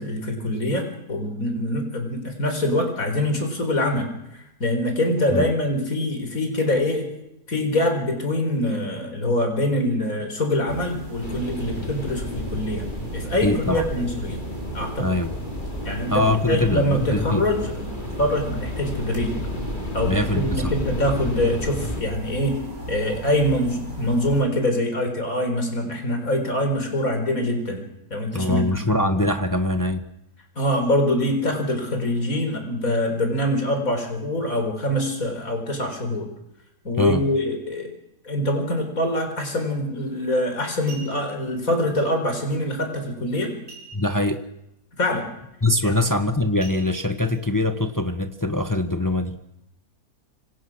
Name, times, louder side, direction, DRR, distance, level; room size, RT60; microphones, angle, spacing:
voice 1, 0.0-7.1 7.5-14.4 14.7-15.2 15.8-19.4 19.9-22.6 22.9-27.8 28.1-29.0 30.5-36.3 36.8-37.9 38.2-43.6 45.0-45.3 45.8-46.0, left 1 dB, 60° left, 5 dB, 4.8 m, -24 dB
sound 1, 10.7-24.4, right 1 dB, 65° right, 7.8 m, -37 dB
sound 2, 11.2-22.0, left 1 dB, 30° left, 3.6 m, -32 dB
voice 2, 13.4-13.9 15.0-15.3 16.1-17.4 20.1-20.7 28.3-30.0 37.0-37.2 43.9-44.4 45.6-49.4, left 1 dB, 15° left, 8 dB, 1.3 m, -23 dB
sound 3, 40.0-40.2 40.7-41.5 43.7-44.4 44.7-44.8 45.3-45.5 46.6-47.4 48.0-48.1, right 4 dB, 25° right, 5.5 m, -44 dB
26.5 x 25.5 x 6.3 m, 0.85 s
omnidirectional pair, 1.6 m